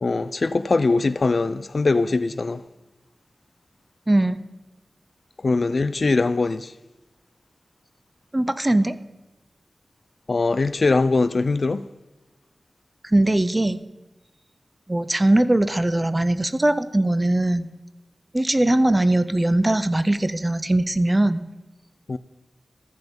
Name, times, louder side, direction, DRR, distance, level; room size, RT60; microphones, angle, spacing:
voice 1, 0.0-2.6 5.4-6.7 10.3-11.8 22.1-22.2, left 3 dB, 55° left, 0.4 m, -21 dB
voice 2, 4.1-4.4 8.3-9.0 13.0-13.8 14.9-17.7 18.3-21.4, right 1 dB, 20° right, 0.6 m, -20 dB
14.0 x 5.8 x 5.3 m
wide cardioid pair, 80°, 0 cm